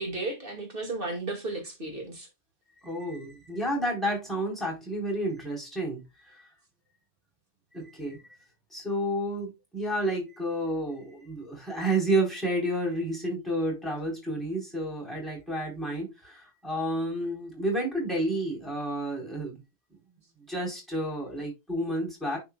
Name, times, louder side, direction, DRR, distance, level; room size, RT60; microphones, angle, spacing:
voice 1, 0.0-2.3, right 2 dB, 50° right, 2.6 m, -34 dB
voice 2, 2.8-6.5 7.7-8.2 8.7-19.6 20.5-22.4, right 1 dB, ahead, 4.5 m, -30 dB
10.5 x 4.9 x 2.4 m
omnidirectional pair, 1.2 m